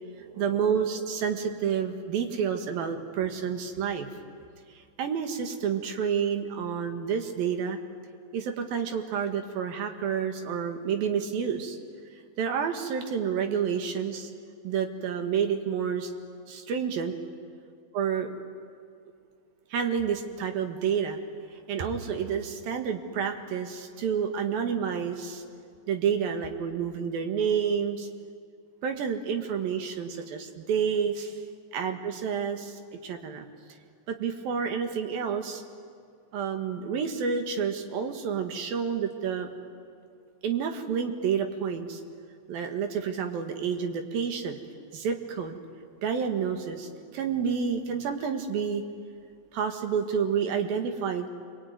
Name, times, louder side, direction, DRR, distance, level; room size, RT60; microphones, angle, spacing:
voice 1, 0.2-4.1 4.7-7.8 8.3-11.8 12.4-14.3 14.6-16.1 16.5-17.2 18.0-18.4 19.7-21.2 21.7-25.4 25.9-28.1 28.8-31.4 31.7-33.5 34.1-35.6 36.3-39.5 40.4-42.0 42.5-44.6 44.9-45.6 46.0-48.8 49.5-51.3, right 7 dB, 80° right, 5 dB, 3.6 m, -29 dB
27.5 x 22.0 x 9.5 m, 2.2 s
omnidirectional pair, 4.1 m